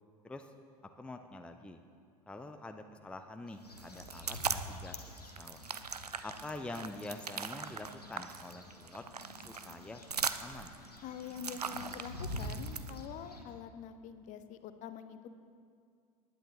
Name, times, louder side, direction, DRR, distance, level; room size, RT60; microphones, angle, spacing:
voice 1, 0.9-1.8 2.3-5.6 6.2-9.0 9.4-10.0 10.4-10.7, left 2 dB, 5° left, 6 dB, 0.6 m, -46 dB
sound 1, 3.5-13.4, left 1 dB, 90° left, 1.1 m, -47 dB
sound 2, 3.8-4.8 5.2-13.0, right 6 dB, 85° right, 0.5 m, -40 dB
voice 2, 11.0-15.3, left 8 dB, 40° left, 10 dB, 0.7 m, -45 dB
19.0 x 9.9 x 3.5 m, 2.2 s
figure-of-eight pair, 75°, 19 cm